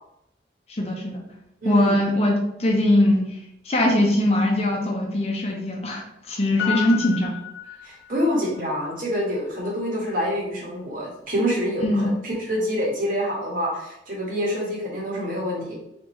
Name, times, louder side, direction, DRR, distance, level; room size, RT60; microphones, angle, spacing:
voice 1, 0.7-1.2 1.6-3.3 3.7-7.4 11.8-12.2, left 1 dB, 35° left, 0 dB, 0.8 m, -21 dB
voice 2, 1.6-2.0 6.6-6.8 7.8-15.8, equal, 50° right, -4 dB, 1.5 m, -26 dB
Piano, 6.6-8.4 8.7-8.8, left 11 dB, 80° left, 0.6 m, -31 dB
3.9 x 3.7 x 3.1 m, 0.80 s
head